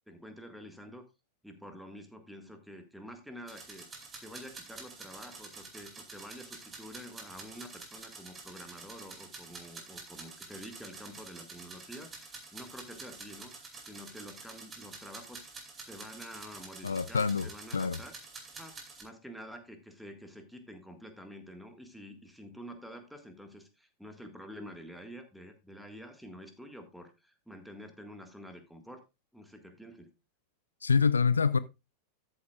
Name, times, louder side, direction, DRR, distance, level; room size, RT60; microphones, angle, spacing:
voice 1, 0.1-1.0 1.4-3.9 4.2-18.1 18.5-29.0 29.3-30.1, equal, ahead, 1.7 m, -48 dB
sound 1, 3.5-19.0, right 3 dB, 20° right, 2.5 m, -48 dB
voice 2, 16.8-18.0 30.8-31.6, left 5 dB, 75° left, 0.4 m, -26 dB
13.0 x 7.8 x 2.4 m
figure-of-eight pair, 90°, 0 cm